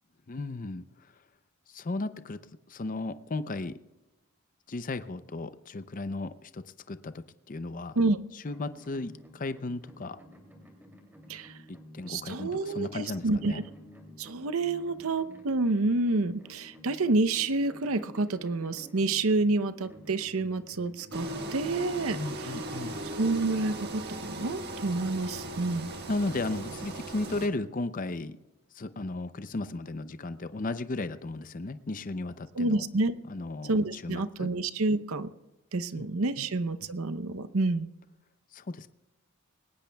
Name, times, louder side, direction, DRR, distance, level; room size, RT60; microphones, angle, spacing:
voice 1, 0.3-1.1 1.7-2.4 2.7-3.8 4.7-8.0 8.3-10.2 11.7-13.6 22.1-23.0 26.1-28.4 28.7-32.8 33.3-34.5 35.9-36.1 36.4-36.5 38.5-38.9, left 2 dB, 35° left, 12 dB, 0.5 m, -35 dB
sound 1, 8.4-23.8, equal, 10° right, 2.7 m, -52 dB
voice 2, 12.1-13.6 14.2-22.5 23.2-25.9 32.6-33.2 33.7-35.3 35.7-37.9, right 2 dB, 70° right, 13 dB, 0.7 m, -28 dB
Engine, 21.1-27.5, right 2 dB, 45° right, 1.5 m, -38 dB
21.5 x 19.0 x 2.3 m, 1.0 s
head